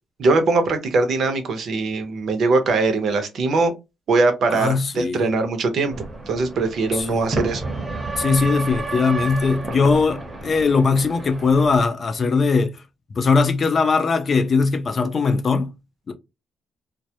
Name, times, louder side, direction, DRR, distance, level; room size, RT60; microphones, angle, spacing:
voice 1, 0.2-3.7 4.1-5.9 6.3-7.7, right 3 dB, 65° right, 0.7 m, -21 dB
voice 2, 4.5-5.2 6.9-7.2 8.2-12.8 13.2-15.7 16.1-16.2, left 4 dB, 40° left, 0.5 m, -20 dB
sound 1, 5.9-11.8, right 3 dB, 25° right, 0.8 m, -31 dB
2.2 x 2.1 x 2.7 m
cardioid pair, 90°, 0 cm